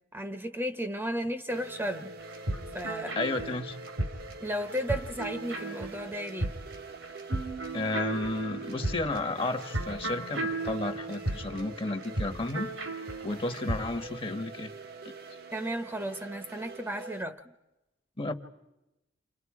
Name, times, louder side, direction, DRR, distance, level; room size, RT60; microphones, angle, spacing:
voice 1, 0.1-2.1 2.7-3.2 4.4-6.5 15.5-17.4, equal, 10° right, 1.0 m, -34 dB
sound 1, 1.5-17.2, right 3 dB, 50° right, 1.0 m, -45 dB
sound 2, 2.2-13.9, right 2 dB, 85° right, 2.7 m, -35 dB
voice 2, 3.1-3.8 7.7-12.7 13.2-14.7 15.0-15.1 18.2-18.3, left 2 dB, 25° left, 1.2 m, -32 dB
29.5 x 28.0 x 4.8 m
head